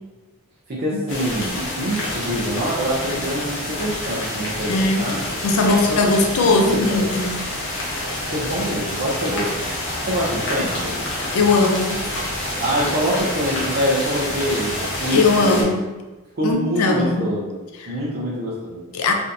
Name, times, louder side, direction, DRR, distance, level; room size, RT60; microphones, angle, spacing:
voice 1, 0.7-5.2 5.9-6.1 6.4-7.2 8.3-9.5 10.0-11.0 11.4-11.5 12.6-14.7 15.0-15.7 16.4-17.6 17.9-18.8, equal, 45° right, -6 dB, 0.5 m, -25 dB
sound 1, 1.1-15.6, left 1 dB, 55° left, 0.8 m, -27 dB
voice 2, 4.7-5.1 5.4-7.4 11.3-12.1 15.1-15.8 16.4-17.3 17.8-18.0 18.9-19.1, left 3 dB, 75° left, 3 dB, 0.4 m, -19 dB
3.4 x 2.6 x 2.6 m, 1.2 s
head